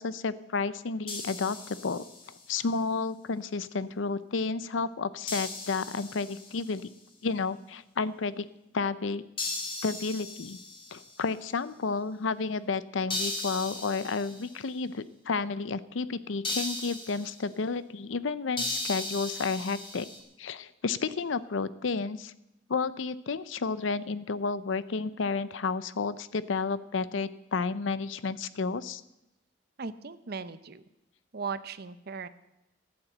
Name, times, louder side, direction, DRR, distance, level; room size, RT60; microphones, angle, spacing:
voice 1, 0.0-2.0 2.5-6.9 7.2-8.5 8.7-9.2 9.8-10.6 10.9-20.1 20.4-22.3 22.7-29.0, left 4 dB, 75° left, 16 dB, 0.6 m, -31 dB
sound 1, 1.1-2.5 5.3-6.8 9.4-11.3 13.1-14.6 16.4-17.4 18.6-20.2, left 2 dB, 25° left, 2.4 m, -37 dB
voice 2, 29.8-30.8 31.3-32.3, right 5 dB, 55° right, 13 dB, 0.7 m, -37 dB
14.0 x 8.8 x 7.9 m, 0.90 s
head